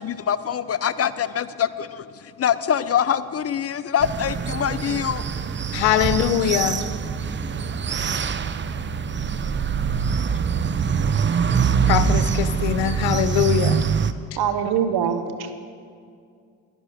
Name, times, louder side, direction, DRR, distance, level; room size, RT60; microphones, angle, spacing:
voice 1, 0.0-5.2, left 9 dB, 35° left, 15 dB, 0.5 m, -24 dB
sound 1, 4.0-14.1, right 6 dB, 30° right, 0.6 m, -24 dB
voice 2, 5.7-6.8 11.9-13.8, left 11 dB, 80° left, 12 dB, 0.8 m, -22 dB
voice 3, 14.4-15.5, right 8 dB, 65° right, 9 dB, 1.1 m, -23 dB
11.5 x 10.0 x 5.8 m, 2.2 s
supercardioid pair, 65°, 41 cm